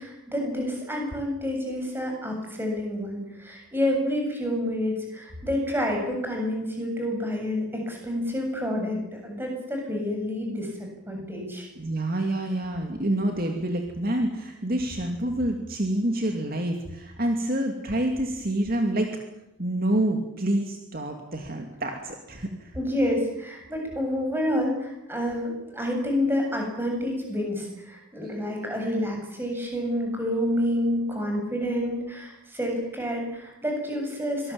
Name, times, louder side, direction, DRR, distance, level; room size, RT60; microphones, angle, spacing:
voice 1, 0.0-11.7 22.7-34.5, left 1 dB, 10° right, 1 dB, 7.7 m, -28 dB
voice 2, 11.8-19.1 19.6-22.7 28.2-28.3, right 1 dB, 45° right, 3 dB, 2.7 m, -27 dB
25.0 x 19.5 x 8.9 m, 0.90 s
head